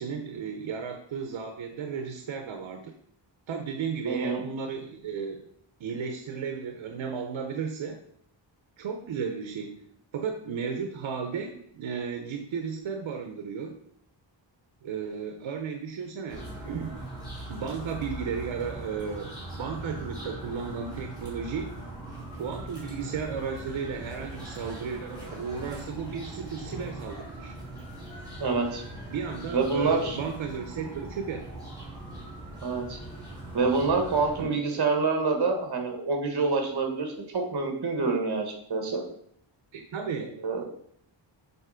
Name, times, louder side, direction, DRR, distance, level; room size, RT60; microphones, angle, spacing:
voice 1, 0.0-2.9 3.5-5.4 5.8-8.0 8.8-9.8 10.1-13.8 14.8-17.0 17.5-21.8 22.3-27.6 29.1-31.5 34.4-34.7 39.7-40.4, right 6 dB, 90° right, 4 dB, 0.8 m, -34 dB
voice 2, 4.1-4.4 28.4-28.8 29.5-30.2 32.6-33.0 33.5-39.0 40.4-40.6, right 4 dB, 60° right, 4 dB, 1.6 m, -27 dB
sound 1, 16.3-34.4, right 1 dB, 10° right, 2.9 m, -40 dB
7.0 x 4.2 x 5.0 m, 0.67 s
wide cardioid pair, 140°, 45 cm